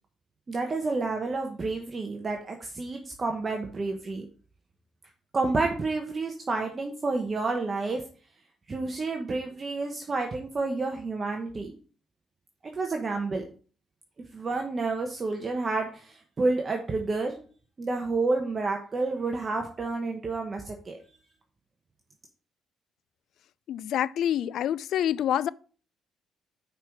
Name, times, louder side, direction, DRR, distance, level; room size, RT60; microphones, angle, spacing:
voice 1, 0.5-4.3 5.3-8.0 8.7-11.7 12.7-13.4 14.3-17.4 17.8-21.0, right 3 dB, 35° right, 1.1 m, -29 dB
voice 2, 23.7-25.5, left 10 dB, 75° left, 0.3 m, -27 dB
5.9 x 4.8 x 5.9 m
cardioid pair, 90°, 0 cm